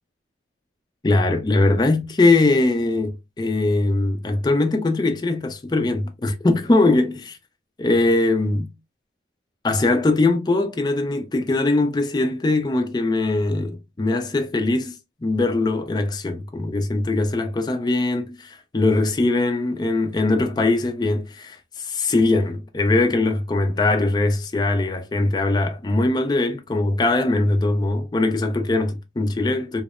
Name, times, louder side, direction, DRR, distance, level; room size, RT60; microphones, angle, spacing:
voice 1, 1.0-7.4 7.8-8.7 9.6-15.0 15.2-29.8, left 2 dB, 25° left, 0.4 m, -21 dB
2.7 x 2.1 x 2.4 m
head